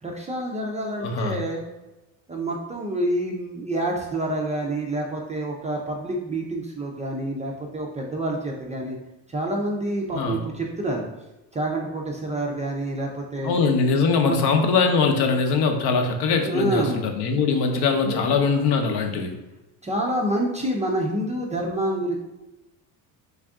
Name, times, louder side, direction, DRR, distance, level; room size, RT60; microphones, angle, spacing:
voice 1, 0.0-1.6 2.3-9.0 9.3-11.0 11.5-13.6 14.2-14.4 16.3-17.0 17.6-18.5 19.8-22.1, right 1 dB, 15° right, -1 dB, 0.4 m, -28 dB
voice 2, 1.0-1.4 10.1-10.4 13.4-19.3, left 4 dB, 65° left, 4 dB, 0.7 m, -22 dB
3.4 x 2.5 x 3.5 m, 1.0 s
cardioid pair, 110°, 43 cm